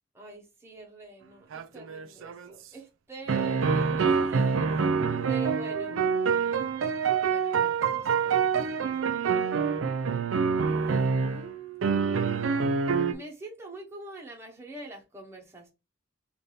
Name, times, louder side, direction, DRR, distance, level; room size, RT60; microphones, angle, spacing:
voice 1, 0.1-6.0 7.2-9.3 10.7-12.6 13.0-15.7, right 3 dB, 15° right, 0.9 m, -45 dB
sound 1, 1.5-2.5 3.3-11.5 11.8-13.1, right 5 dB, 80° right, 0.5 m, -26 dB
3.3 x 2.6 x 4.0 m
head